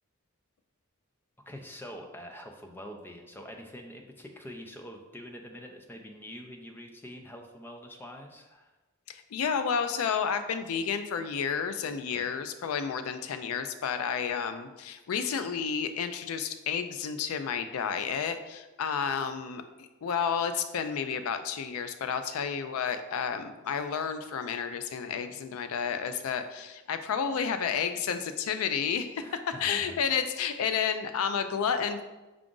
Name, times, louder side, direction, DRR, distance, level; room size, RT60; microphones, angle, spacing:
voice 1, 1.5-8.7 12.1-12.3 29.2-30.0, equal, 10° left, 3 dB, 0.4 m, -45 dB
voice 2, 9.1-29.2 29.6-32.0, left 7 dB, 75° left, 9 dB, 0.4 m, -31 dB
4.7 x 2.5 x 3.7 m, 1.1 s
head